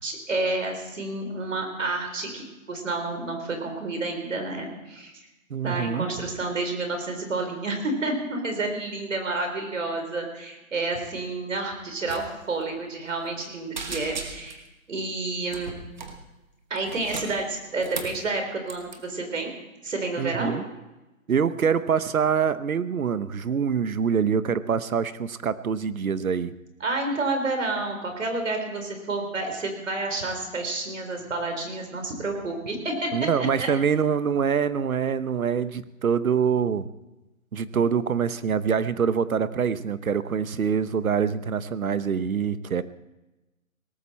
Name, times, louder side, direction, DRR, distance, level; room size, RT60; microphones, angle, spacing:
voice 1, 0.0-5.1 5.6-15.7 16.7-19.5 19.8-20.6 26.8-33.1 33.6-33.7, right 2 dB, 65° right, 4 dB, 4.3 m, -30 dB
voice 2, 5.5-6.1 20.2-20.6 21.3-26.5 33.1-36.9 37.5-42.8, right 7 dB, 80° right, 14 dB, 1.0 m, -25 dB
sound 1, 12.0-12.2 12.5-12.7 13.1-13.5 13.7-14.7 15.5-16.2 16.8-18.2 18.7-19.0, right 4 dB, 35° right, 1.3 m, -37 dB
18.0 x 14.5 x 4.3 m, 1.0 s
hypercardioid pair, 175°, 41 cm